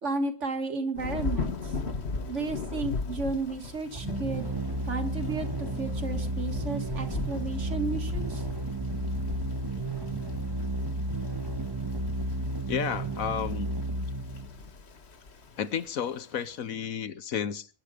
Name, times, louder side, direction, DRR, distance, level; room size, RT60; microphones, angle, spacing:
voice 1, 0.0-1.7 2.3-4.5 4.9-8.4, right 3 dB, 55° right, 2.2 m, -33 dB
Thunder / Rain, 1.0-16.6, left 4 dB, 50° left, 1.5 m, -38 dB
sound 1, 3.9-14.7, right 1 dB, 20° right, 0.9 m, -32 dB
voice 2, 12.7-13.7 15.6-17.7, left 8 dB, 70° left, 1.3 m, -32 dB
21.0 x 10.5 x 5.0 m
omnidirectional pair, 1.5 m